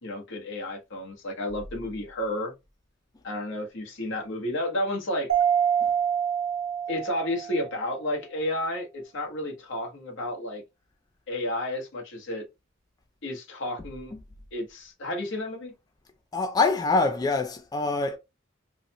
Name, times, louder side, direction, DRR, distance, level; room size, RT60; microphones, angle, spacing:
voice 1, 0.0-2.5 3.2-5.3 6.9-10.6 11.3-12.4 13.2-14.1 14.5-15.7, left 1 dB, 65° left, 1.0 m, -31 dB
Mallet percussion, 5.3-7.8, right 8 dB, 60° right, 1.1 m, -26 dB
voice 2, 16.3-18.2, left 3 dB, 20° left, 0.3 m, -24 dB
3.8 x 2.0 x 2.9 m
head